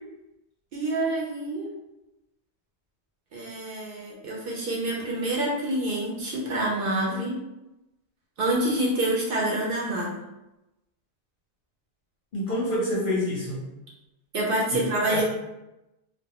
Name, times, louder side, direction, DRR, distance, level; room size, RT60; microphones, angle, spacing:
voice 1, 0.7-1.7 3.3-7.4 8.4-10.2 14.3-15.2, right 1 dB, 60° right, -3 dB, 0.7 m, -27 dB
voice 2, 12.3-13.6 15.1-15.2, left 1 dB, 60° left, -4 dB, 0.6 m, -27 dB
2.1 x 2.1 x 2.8 m, 0.95 s
omnidirectional pair, 1.2 m